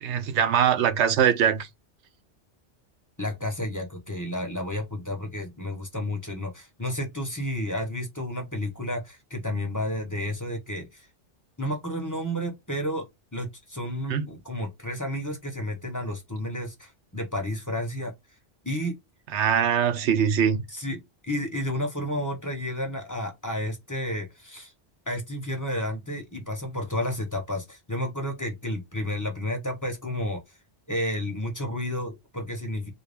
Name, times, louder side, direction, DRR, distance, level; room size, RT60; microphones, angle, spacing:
voice 1, 0.0-1.7 14.1-14.3 19.3-20.6, right 8 dB, 90° right, 1.0 m, -22 dB
voice 2, 3.2-11.1 11.6-18.1 18.6-19.0 20.7-24.7 25.1-30.4 30.9-32.9, left 1 dB, 20° left, 0.9 m, -31 dB
4.0 x 2.3 x 3.4 m
omnidirectional pair, 1.1 m